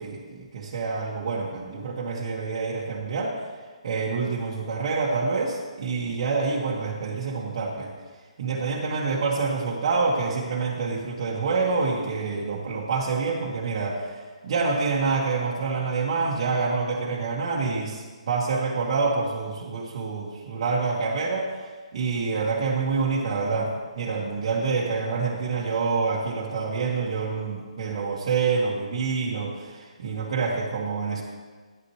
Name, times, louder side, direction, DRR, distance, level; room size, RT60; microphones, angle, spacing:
voice 1, 0.0-3.4 3.8-7.9 8.4-31.2, right 4 dB, 50° right, -5 dB, 1.7 m, -27 dB
14.5 x 10.5 x 3.3 m, 1.4 s
hypercardioid pair, 150°, 4 cm